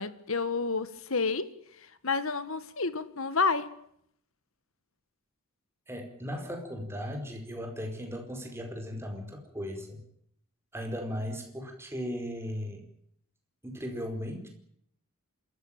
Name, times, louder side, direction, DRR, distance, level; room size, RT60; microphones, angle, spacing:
voice 1, 0.0-1.5 2.0-3.8, left 4 dB, 65° left, 1.6 m, -29 dB
voice 2, 5.9-10.0 10.7-12.8 13.6-14.5, equal, 10° right, 4.8 m, -37 dB
26.5 x 14.5 x 8.9 m
head